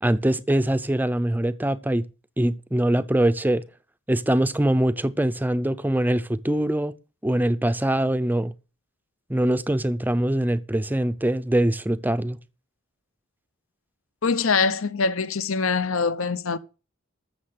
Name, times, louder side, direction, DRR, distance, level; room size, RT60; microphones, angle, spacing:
voice 1, 0.0-2.0 2.4-3.6 4.1-7.0 7.2-8.5 9.3-12.4, right 1 dB, 10° right, 0.5 m, -23 dB
voice 2, 14.2-16.6, left 4 dB, 65° left, 0.8 m, -23 dB
13.5 x 6.8 x 6.5 m
head